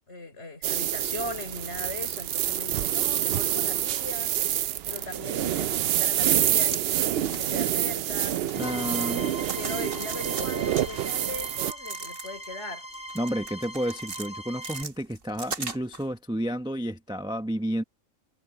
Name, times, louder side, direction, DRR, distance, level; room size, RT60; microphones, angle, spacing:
voice 1, 0.1-4.6 4.9-12.9, left 2 dB, 55° left, 5.0 m, -39 dB
sound 1, 0.6-11.7, right 11 dB, 65° right, 0.6 m, -27 dB
sound 2, 6.3-6.8 7.2-7.6 8.0-9.1 9.4-10.4 10.7-12.5 12.9-14.3 14.6-16.0, right 4 dB, 45° right, 1.6 m, -39 dB
sound 3, 8.5-14.8, right 1 dB, 25° left, 1.2 m, -40 dB
voice 2, 8.5-9.3 13.1-17.8, equal, 5° right, 0.8 m, -31 dB
omnidirectional pair, 1.4 m